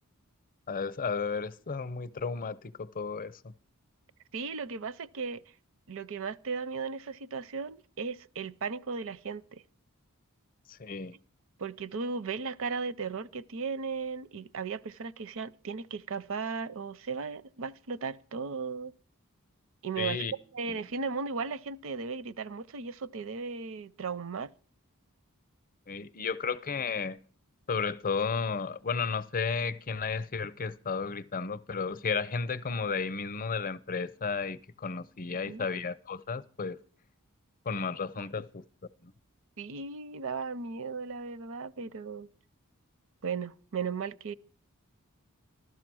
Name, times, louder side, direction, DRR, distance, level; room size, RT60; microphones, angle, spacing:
voice 1, 0.7-3.5 10.8-11.1 20.0-20.3 20.7-20.8 25.9-27.2 27.7-36.8 37.7-38.6 39.0-39.1, left 5 dB, 40° left, 0.6 m, -33 dB
voice 2, 4.3-5.4 5.9-9.6 11.6-18.9 19.8-20.2 20.5-24.5 35.3-35.7 39.6-42.3 43.2-44.3, right 5 dB, 65° right, 0.6 m, -36 dB
15.0 x 12.5 x 6.2 m
head